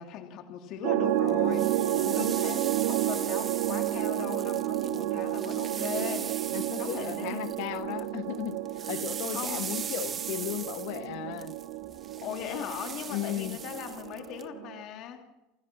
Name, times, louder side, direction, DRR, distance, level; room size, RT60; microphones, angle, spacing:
voice 1, 0.0-6.3 6.8-7.4 9.3-9.6 12.2-15.2, left 9 dB, 40° left, 5 dB, 2.8 m, -39 dB
sound 1, 0.8-14.8, right 13 dB, 75° right, 1.8 m, -31 dB
sound 2, 1.3-8.1 8.3-14.4, right 7 dB, 20° right, 1.3 m, -40 dB
voice 2, 1.9-2.6 6.5-8.6 8.9-11.6 13.1-13.6, left 15 dB, 55° left, 11 dB, 1.6 m, -36 dB
28.5 x 28.0 x 6.1 m, 1.0 s
cardioid pair, 170°, 0 cm